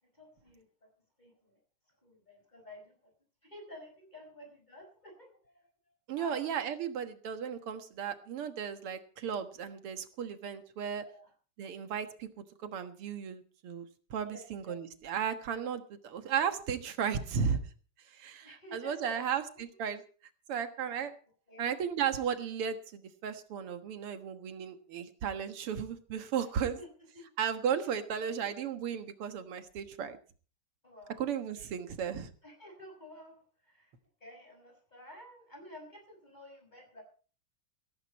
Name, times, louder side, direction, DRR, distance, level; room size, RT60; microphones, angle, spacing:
voice 1, 0.1-0.7 1.2-1.5 2.0-3.0 3.4-5.5 6.1-6.5 11.1-11.3 14.2-14.8 18.4-19.4 21.5-21.7 26.6-26.9 27.1-27.3 28.0-28.5 30.8-31.2 32.4-33.9 34.2-37.0, left 1 dB, 20° left, 3 dB, 6.0 m, -51 dB
voice 2, 6.1-11.0 11.6-17.6 18.1-20.0 20.5-21.2 21.6-26.8 27.4-30.2 31.2-32.3, right 7 dB, 90° right, 9 dB, 2.4 m, -35 dB
16.0 x 15.0 x 4.2 m, 0.40 s
omnidirectional pair, 2.4 m